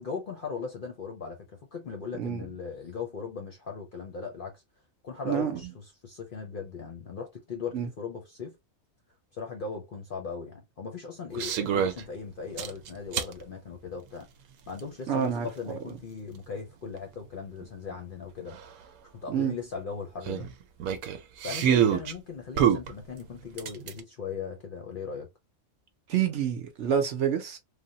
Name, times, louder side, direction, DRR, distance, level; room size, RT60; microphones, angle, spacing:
voice 1, 0.0-4.6 5.0-8.6 9.3-14.3 14.7-18.6 19.1-20.5 21.4-25.3, left 5 dB, 50° left, 0.7 m, -38 dB
voice 2, 5.2-5.7 7.7-7.9 15.1-15.5 19.3-19.5 26.1-27.6, right 8 dB, 60° right, 0.9 m, -28 dB
sound 1, 11.3-12.0 12.6-13.3 14.8-14.9 17.6-17.7 17.9-18.0 18.5-18.6 20.3-22.1 22.6-24.0, right 9 dB, 90° right, 1.1 m, -26 dB
3.3 x 2.1 x 2.7 m
omnidirectional pair, 1.5 m